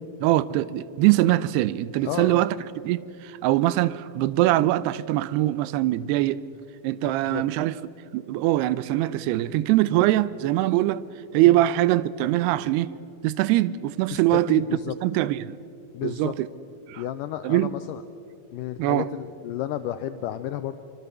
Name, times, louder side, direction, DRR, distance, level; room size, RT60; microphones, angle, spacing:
voice 1, 0.2-2.6 2.8-6.4 6.8-7.8 8.1-11.0 11.3-12.9 13.2-14.7 15.0-15.6 16.0-16.5 16.9-17.0 17.4-17.7 18.8-19.1, right 15 dB, 90° right, 2.7 m, -22 dB
voice 2, 2.1-2.4 7.3-7.4 11.4-11.6 14.1-14.9 15.9-16.3 17.0-18.0 18.5-20.8, left 12 dB, 85° left, 1.9 m, -32 dB
24.5 x 23.5 x 6.8 m
omnidirectional pair, 4.6 m